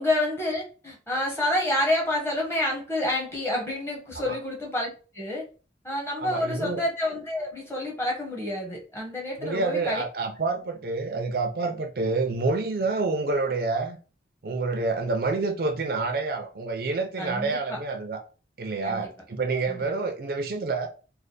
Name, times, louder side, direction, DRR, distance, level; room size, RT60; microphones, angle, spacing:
voice 1, 0.0-4.9 5.1-5.4 5.8-10.0 17.2-17.8 18.8-19.1 19.7-19.9, left 1 dB, 15° left, 1.0 m, -28 dB
voice 2, 6.2-6.8 9.4-14.0 14.4-18.2 18.6-20.9, right 3 dB, 55° right, 0.5 m, -28 dB
3.2 x 2.1 x 3.9 m
head